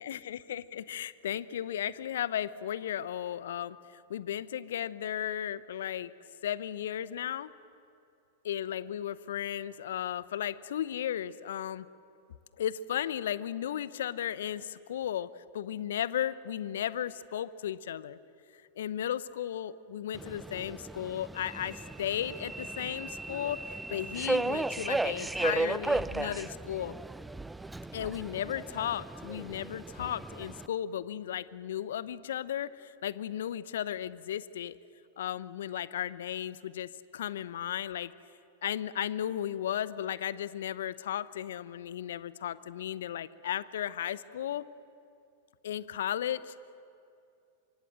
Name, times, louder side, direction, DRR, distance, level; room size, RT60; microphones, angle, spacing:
voice 1, 0.0-6.1 6.4-7.5 8.4-11.9 12.6-18.2 18.8-26.9 27.9-34.8 35.2-38.1 38.6-44.6 45.6-46.5, left 10 dB, 65° left, 17 dB, 0.8 m, -35 dB
Subway metro underground, 20.1-30.7, right 2 dB, 5° right, 0.5 m, -35 dB
25.0 x 24.0 x 7.7 m, 2.5 s
figure-of-eight pair, 95°, 0 cm